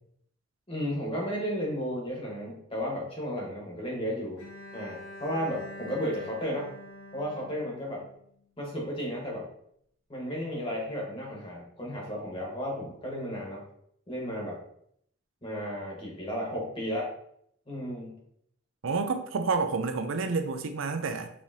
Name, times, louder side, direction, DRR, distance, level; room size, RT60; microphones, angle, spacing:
voice 1, 0.7-4.4 4.7-6.7 7.1-8.0 8.6-9.5 10.1-13.6 14.1-14.6 15.4-17.1 17.7-18.2, equal, 25° left, -2 dB, 1.3 m, -33 dB
Bowed string instrument, 4.4-8.4, left 1 dB, 65° left, 1.7 m, -45 dB
voice 2, 18.8-21.3, right 4 dB, 75° right, 8 dB, 0.5 m, -29 dB
5.5 x 3.1 x 2.8 m, 0.69 s
head